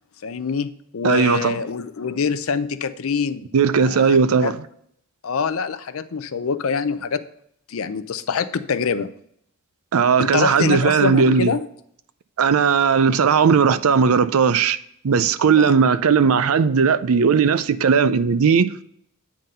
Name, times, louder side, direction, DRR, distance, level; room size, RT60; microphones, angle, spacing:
voice 1, 0.2-3.5 3.8-4.5 5.2-7.2 7.7-9.1 10.2-11.7 15.5-15.7, left 5 dB, 70° left, 0.5 m, -25 dB
voice 2, 1.0-1.6 3.5-4.5 9.9-11.5 12.4-14.8 15.0-18.7, right 6 dB, 75° right, 0.5 m, -17 dB
8.9 x 3.9 x 5.5 m
head